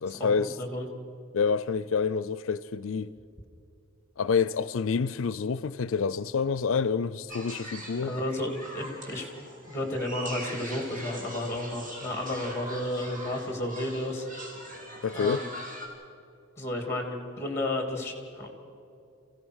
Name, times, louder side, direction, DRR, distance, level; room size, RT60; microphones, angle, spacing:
voice 1, 0.0-0.5 1.3-3.1 4.2-8.2 15.0-15.4, left 5 dB, 85° left, 0.5 m, -28 dB
sound 1, 7.3-15.9, equal, 45° right, 3.9 m, -42 dB
voice 2, 8.0-9.3 9.7-14.6 15.1-15.5 16.6-18.5, left 1 dB, 15° left, 2.9 m, -32 dB
27.0 x 16.0 x 6.4 m
head